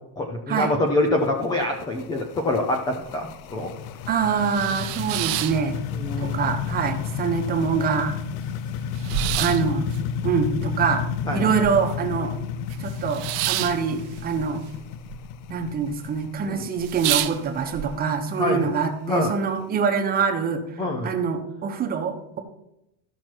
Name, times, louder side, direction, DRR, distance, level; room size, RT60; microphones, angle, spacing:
voice 1, 0.2-3.7 5.9-6.4 9.2-9.4 11.2-11.5 16.4-16.6 18.4-18.7 19.1-19.3 20.8-21.1, left 1 dB, 10° left, 3 dB, 0.3 m, -25 dB
sound 1, 0.9-19.6, left 7 dB, 75° left, 0.7 m, -32 dB
sound 2, 3.0-3.1 3.5-3.6 4.1-6.3 6.6-7.3 7.7-7.8 8.0-12.1 12.4-15.2 15.4-16.0 16.4-16.5 16.8-17.9, right 15 dB, 45° right, 0.6 m, -30 dB
voice 2, 4.1-5.8 6.2-8.2 9.4-9.9 10.2-12.4 12.8-14.6 15.5-22.4, right 6 dB, 20° right, 5 dB, 0.9 m, -25 dB
14.0 x 6.0 x 4.5 m, 0.86 s
cardioid pair, 180°, 43 cm